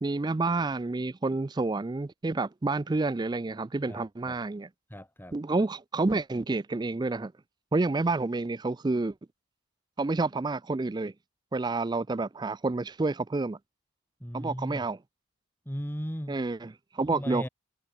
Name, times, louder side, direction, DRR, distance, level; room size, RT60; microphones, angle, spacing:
voice 1, 0.0-4.7 5.3-7.3 7.7-9.1 10.0-11.1 11.5-13.6 14.3-15.0 16.3-17.5, right 3 dB, 20° right, 0.3 m, -29 dB
voice 2, 3.9-4.4 4.9-5.4 14.2-14.8 15.7-16.4 17.1-17.5, equal, 10° left, 7.4 m, -37 dB
head